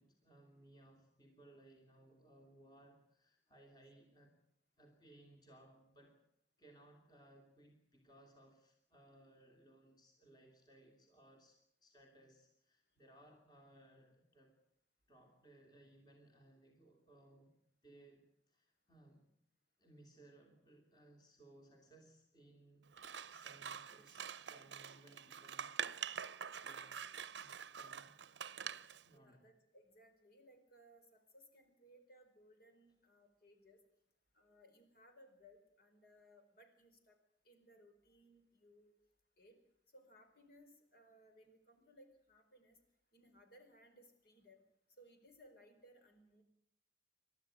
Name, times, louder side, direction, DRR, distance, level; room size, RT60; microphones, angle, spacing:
voice 1, 0.0-4.4 4.8-6.2 6.6-14.6 15.1-17.6 17.8-19.3 19.8-23.0 23.2-25.7 26.3-27.1 27.3-28.2 29.0-29.5, right 1 dB, 20° left, 2 dB, 3.0 m, -64 dB
Scissors, 22.9-29.0, right 7 dB, 70° right, 0.8 m, -46 dB
voice 2, 29.1-33.8 34.3-37.2 37.4-38.9 39.4-39.6 39.9-42.8 43.1-44.6 45.0-46.4, equal, 55° left, 6 dB, 4.6 m, -64 dB
29.0 x 13.0 x 9.2 m, 0.74 s
head